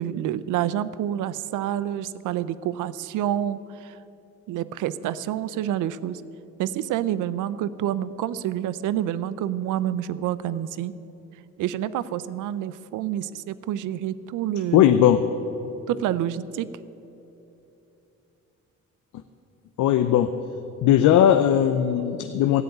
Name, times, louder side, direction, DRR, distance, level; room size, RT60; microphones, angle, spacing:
voice 1, 0.0-4.0 4.5-6.2 6.6-10.9 11.6-14.9 15.9-16.7, right 11 dB, 85° right, 16 dB, 0.6 m, -28 dB
voice 2, 14.7-15.2 19.8-20.3 20.8-22.6, left 10 dB, 75° left, 9 dB, 0.6 m, -18 dB
14.0 x 7.9 x 9.3 m, 2.9 s
cardioid pair, 90°, 30 cm